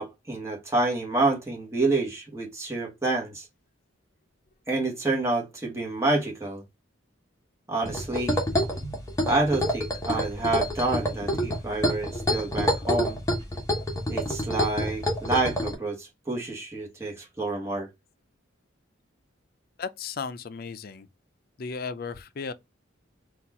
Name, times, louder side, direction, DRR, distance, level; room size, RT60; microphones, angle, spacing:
voice 1, 0.0-3.5 4.7-6.6 7.7-8.4 9.3-13.2 14.1-17.9, right 2 dB, 15° right, 1.1 m, -28 dB
sound 1, 7.8-15.8, equal, 15° left, 0.8 m, -27 dB
voice 2, 19.8-21.1 21.6-22.5, left 5 dB, 45° left, 0.4 m, -35 dB
4.2 x 2.3 x 4.1 m
head